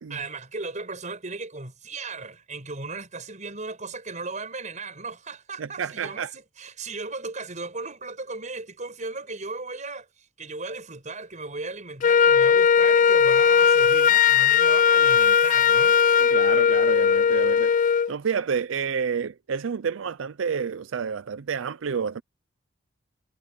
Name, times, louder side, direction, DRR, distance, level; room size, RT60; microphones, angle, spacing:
voice 1, 0.1-16.0, right 3 dB, 40° right, 5.3 m, -36 dB
voice 2, 5.6-6.3 16.2-17.7 18.1-22.2, right 6 dB, 75° right, 0.5 m, -29 dB
Wind instrument woodwind instrument, 12.0-18.1, left 7 dB, 40° left, 0.4 m, -18 dB
head